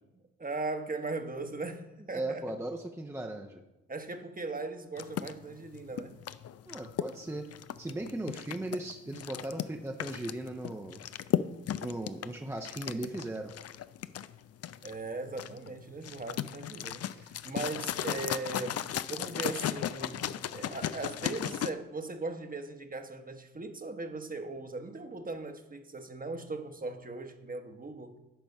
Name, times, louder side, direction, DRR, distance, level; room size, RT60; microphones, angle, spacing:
voice 1, 0.4-2.5 3.9-6.2 14.8-18.8 19.1-28.1, right 3 dB, 30° right, 1.1 m, -39 dB
voice 2, 2.1-3.6 6.7-7.5 7.8-11.0 11.8-13.5 17.1-17.3, right 1 dB, 10° right, 0.7 m, -37 dB
sound 1, 5.0-21.7, left 10 dB, 55° left, 0.4 m, -36 dB
10.5 x 4.5 x 5.4 m
supercardioid pair, 45°, 29 cm